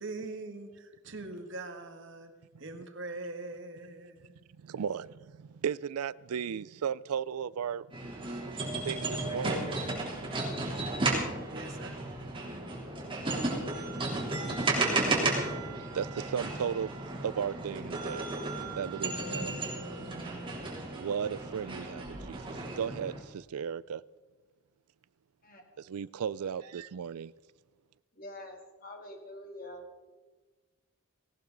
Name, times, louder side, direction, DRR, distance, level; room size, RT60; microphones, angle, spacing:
voice 1, 0.0-2.3 2.6-4.4 11.5-12.1, right 2 dB, 55° right, 1.7 m, -42 dB
voice 2, 4.6-7.9 8.8-9.6 14.6-14.8 15.9-16.9 17.2-18.3 18.7-19.6 20.9-24.0 25.8-27.3, right 7 dB, 85° right, 0.4 m, -35 dB
sound 1, 7.9-23.2, right 2 dB, 25° right, 3.4 m, -34 dB
voice 3, 28.1-30.1, left 1 dB, 40° left, 3.0 m, -46 dB
18.5 x 18.5 x 4.0 m
head